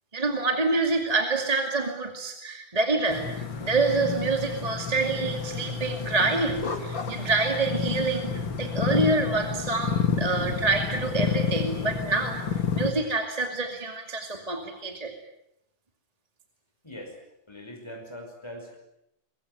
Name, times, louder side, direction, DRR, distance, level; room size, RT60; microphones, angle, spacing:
voice 1, 0.1-15.1, right 3 dB, 20° right, 4 dB, 2.4 m, -27 dB
sound 1, 3.1-12.9, left 6 dB, 70° left, 3.1 m, -30 dB
voice 2, 16.8-17.2 17.5-18.8, equal, 10° left, 2 dB, 5.5 m, -41 dB
23.0 x 23.0 x 9.6 m, 0.78 s
omnidirectional pair, 2.2 m